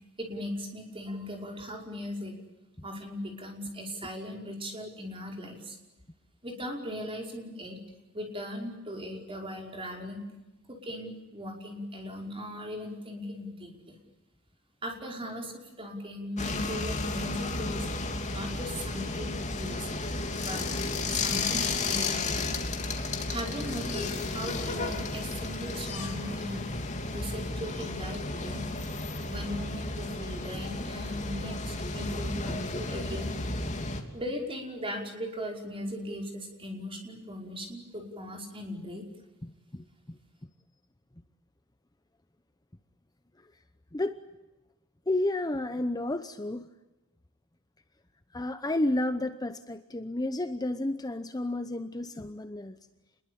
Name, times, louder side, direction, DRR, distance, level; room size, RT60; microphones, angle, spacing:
voice 1, 0.0-2.3 2.8-5.8 6.4-7.8 8.1-10.2 10.7-14.0 14.8-17.9 18.3-20.0 20.4-20.7 21.1-22.4 23.3-26.7 27.1-28.7 29.3-33.3 34.1-39.1, equal, 25° right, 2 dB, 5.3 m, -38 dB
sound 1, 16.4-34.0, left 3 dB, 35° left, 3.0 m, -33 dB
voice 2, 39.4-40.2 43.4-43.5 43.9-44.2 45.1-46.7 48.3-52.8, left 1 dB, 20° left, 10 dB, 0.9 m, -31 dB
28.5 x 22.0 x 8.6 m, 1.0 s
head